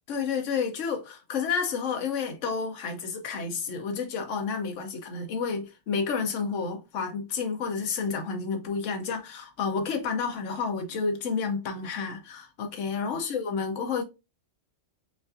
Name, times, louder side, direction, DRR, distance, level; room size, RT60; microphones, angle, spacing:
voice 1, 0.1-14.0, left 5 dB, 80° left, 1.1 m, -30 dB
5.6 x 2.5 x 2.6 m
omnidirectional pair, 1.3 m